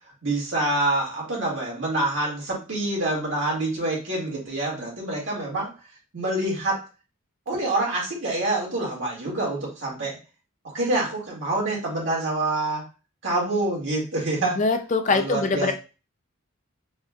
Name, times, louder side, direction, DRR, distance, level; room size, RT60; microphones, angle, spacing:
voice 1, 0.2-5.7 6.1-6.8 7.5-10.2 10.6-12.9 13.2-14.6 15.1-15.7, right 2 dB, 60° right, -4 dB, 2.1 m, -26 dB
voice 2, 14.4-15.7, left 4 dB, 35° left, 6 dB, 0.4 m, -23 dB
4.2 x 3.2 x 2.4 m, 0.31 s
head